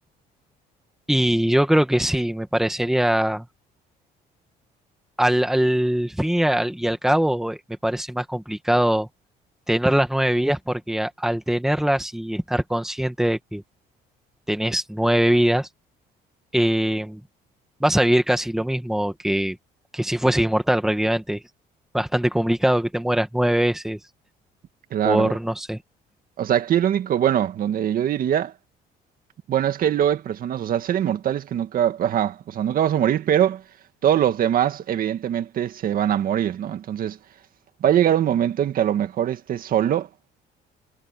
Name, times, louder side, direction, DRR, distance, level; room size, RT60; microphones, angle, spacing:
voice 1, 1.1-3.5 5.2-9.1 9.7-13.6 14.5-15.7 16.5-17.2 17.8-19.6 19.9-21.4 21.9-24.0 25.0-25.8, right 1 dB, ahead, 2.0 m, -22 dB
voice 2, 24.9-25.3 26.4-28.5 29.5-33.6 34.0-37.2 37.8-40.1, right 10 dB, 55° right, 2.1 m, -22 dB
cardioid pair, 110°, 17 cm